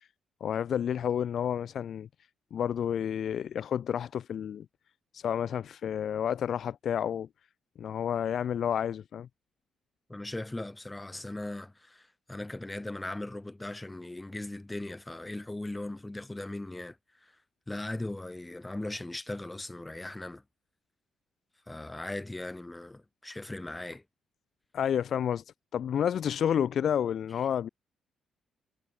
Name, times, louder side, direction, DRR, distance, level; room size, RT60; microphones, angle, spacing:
voice 1, 0.4-2.1 2.5-4.7 5.1-7.3 7.8-9.3 24.7-25.4 25.7-27.7, left 9 dB, 60° left, 0.8 m, -30 dB
voice 2, 10.1-17.0 17.2-17.3 17.7-20.4 21.7-24.0, left 2 dB, 10° left, 6.5 m, -38 dB
cardioid pair, 90°, 0 cm